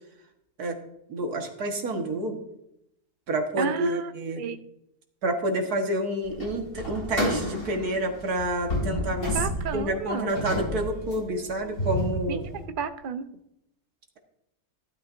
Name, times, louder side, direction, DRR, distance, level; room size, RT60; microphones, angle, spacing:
voice 1, 1.1-2.4 3.3-4.4 5.2-9.4 9.7-12.4, right 1 dB, 80° right, 3 dB, 1.9 m, -28 dB
voice 2, 3.6-4.1 4.4-4.6 9.3-10.3 12.3-13.3, right 6 dB, 55° right, 9 dB, 0.6 m, -32 dB
sound 1, 6.3-12.6, equal, 70° left, 4.5 m, -31 dB
12.5 x 11.5 x 2.6 m, 0.81 s
omnidirectional pair, 1.6 m